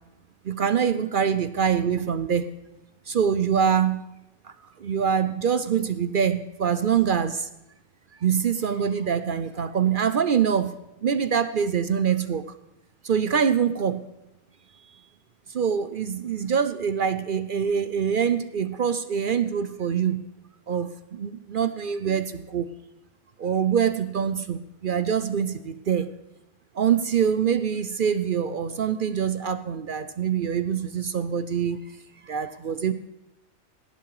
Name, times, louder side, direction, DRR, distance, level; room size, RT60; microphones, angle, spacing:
voice 1, 0.4-2.5 3.1-4.0 4.4-7.5 8.2-10.7 11.0-12.4 13.0-14.0 15.5-20.3 20.7-22.7 23.4-26.1 26.7-31.8 32.2-32.9, right 7 dB, 55° right, 12 dB, 0.5 m, -24 dB
17.5 x 11.0 x 4.8 m, 0.94 s
omnidirectional pair, 1.5 m